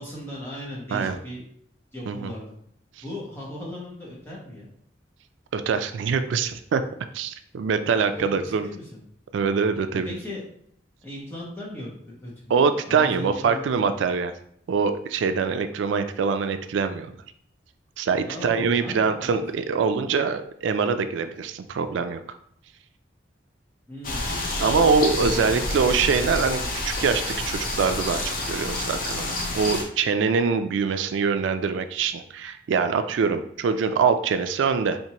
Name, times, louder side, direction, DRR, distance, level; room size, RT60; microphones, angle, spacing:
voice 1, 0.0-1.4 1.9-2.5 3.0-4.7 8.1-9.0 9.9-10.4 11.0-13.8 18.3-19.4 23.9-26.0, left 1 dB, 10° left, -5 dB, 1.0 m, -37 dB
voice 2, 5.5-6.8 7.1-8.7 9.3-10.1 12.5-14.3 14.7-17.1 18.0-22.2 24.6-35.0, right 5 dB, 85° right, 9 dB, 0.3 m, -24 dB
sound 1, 24.0-29.8, left 2 dB, 45° left, 0.6 m, -29 dB
4.4 x 2.6 x 2.9 m, 0.68 s
head